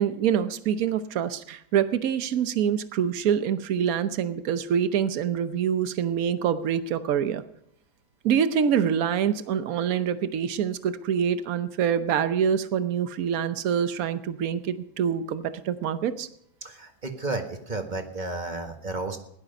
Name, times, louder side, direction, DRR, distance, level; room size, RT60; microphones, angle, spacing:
voice 1, 0.0-7.4 8.2-16.3, right 8 dB, 70° right, 12 dB, 1.3 m, -25 dB
voice 2, 16.6-19.2, right 2 dB, 30° right, 4 dB, 1.6 m, -32 dB
17.0 x 11.5 x 5.3 m, 0.73 s
omnidirectional pair, 1.6 m